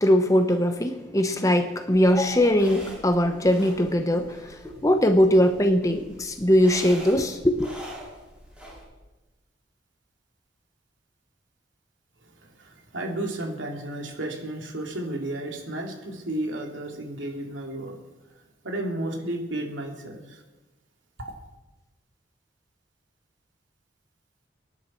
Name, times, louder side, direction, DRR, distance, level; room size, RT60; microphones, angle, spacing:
voice 1, 0.0-7.7, equal, 15° left, 0.8 m, -21 dB
sound 1, 1.9-8.8, equal, 5° right, 5.2 m, -44 dB
voice 2, 12.6-18.0 18.6-20.2, right 1 dB, 80° right, 2.9 m, -32 dB
23.5 x 10.5 x 4.5 m
head